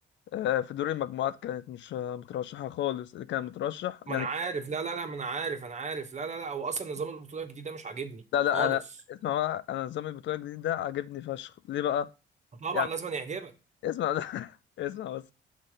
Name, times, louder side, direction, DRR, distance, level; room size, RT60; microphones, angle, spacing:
voice 1, 0.3-4.3 8.3-8.8 9.1-12.1 12.7-12.9 13.8-15.3, left 11 dB, 70° left, 0.5 m, -31 dB
voice 2, 4.1-8.2 8.5-8.8 12.6-13.5, right 5 dB, 35° right, 1.3 m, -34 dB
6.2 x 4.1 x 4.9 m
cardioid pair, 90°, 20 cm